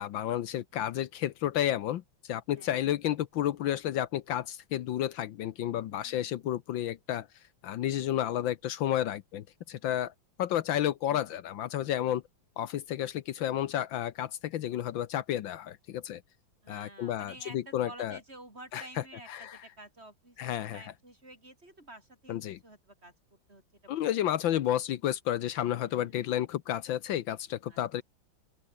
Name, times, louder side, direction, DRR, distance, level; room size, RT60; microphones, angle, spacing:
voice 1, 0.0-7.3 7.6-10.1 10.4-12.2 12.6-16.2 16.7-18.2 18.7-19.6 20.4-20.9 22.3-22.6 23.9-28.0, left 11 dB, 75° left, 1.6 m, -31 dB
voice 2, 2.5-2.9 5.9-6.3 11.1-11.4 16.6-23.1 23.5-23.9 25.8-26.2 27.7-27.8, right 1 dB, 30° right, 5.9 m, -51 dB
open air
omnidirectional pair, 2.2 m